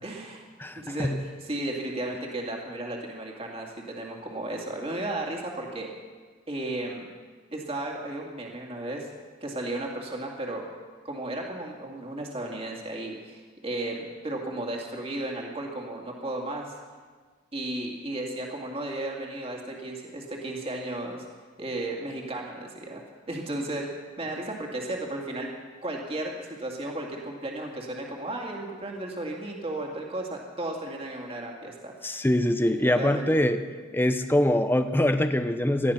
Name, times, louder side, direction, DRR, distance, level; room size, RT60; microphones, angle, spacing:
voice 1, 0.0-0.4 0.8-5.9 6.5-7.0 7.5-9.1 9.4-10.7 11.0-16.8 17.5-21.2 21.6-23.0 23.3-23.9 24.2-25.5 25.8-32.2 32.8-33.3, right 1 dB, 30° right, 0 dB, 2.3 m, -34 dB
voice 2, 0.6-1.2 32.0-33.6 33.9-35.9, left 1 dB, 10° left, 9 dB, 0.6 m, -24 dB
18.5 x 13.0 x 5.8 m, 1.5 s
head